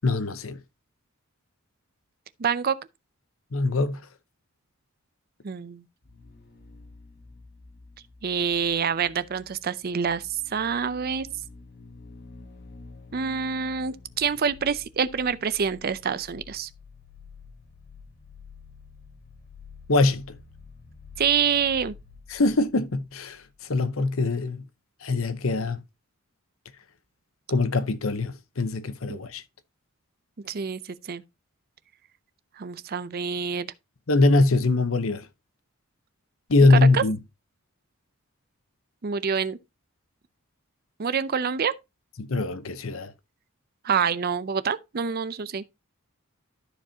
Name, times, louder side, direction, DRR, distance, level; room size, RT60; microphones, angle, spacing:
voice 1, 0.0-0.6 3.5-4.0 19.9-20.3 22.3-23.4 23.7-24.6 25.0-25.8 27.5-29.4 34.1-35.2 36.5-37.2 42.2-43.1, left 3 dB, 70° left, 0.8 m, -22 dB
voice 2, 2.4-2.8 5.4-5.8 8.2-10.2 10.5-11.3 13.1-16.7 21.2-21.9 29.1-29.2 30.4-30.8 31.1-31.2 32.6-33.7 36.7-37.0 39.0-39.6 41.0-41.7 43.8-45.6, right 6 dB, 45° right, 0.5 m, -26 dB
sound 1, 6.0-23.6 23.8-23.9, left 4 dB, 50° left, 1.2 m, -49 dB
13.0 x 4.8 x 2.8 m
head